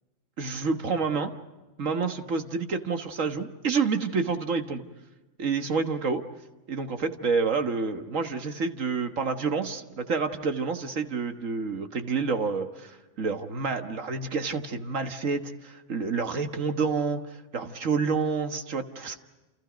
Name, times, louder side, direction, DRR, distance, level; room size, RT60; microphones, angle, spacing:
voice 1, 0.4-1.3 1.8-4.8 5.4-6.2 6.7-19.2, right 4 dB, 85° right, 7 dB, 1.9 m, -28 dB
28.5 x 28.5 x 5.2 m, 1.1 s
omnidirectional pair, 1.3 m